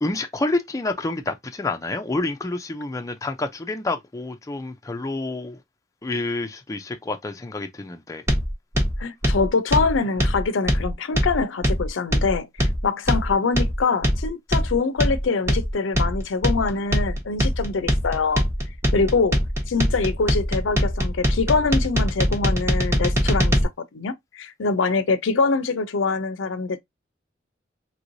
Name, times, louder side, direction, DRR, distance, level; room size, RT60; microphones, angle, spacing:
voice 1, 0.0-5.6 6.0-8.2, left 2 dB, 15° left, 0.4 m, -28 dB
sound 1, 8.3-23.6, equal, 15° right, 0.7 m, -22 dB
voice 2, 9.0-18.5 18.9-19.4 19.7-23.6 23.9-26.8, left 4 dB, 85° left, 0.5 m, -24 dB
3.0 x 3.0 x 2.5 m
head